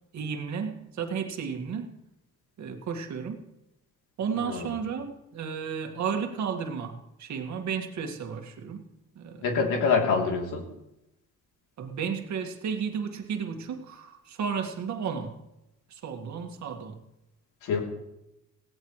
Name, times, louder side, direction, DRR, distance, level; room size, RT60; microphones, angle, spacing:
voice 1, 0.1-1.9 2.6-3.5 4.2-8.9 9.2-9.5 11.8-15.4 15.9-17.0, right 6 dB, 65° right, 5 dB, 2.1 m, -33 dB
voice 2, 4.4-4.7 9.4-10.6 17.6-17.8, left 5 dB, 90° left, 0 dB, 3.4 m, -25 dB
18.5 x 17.0 x 3.3 m, 0.90 s
cardioid pair, 90°, 30 cm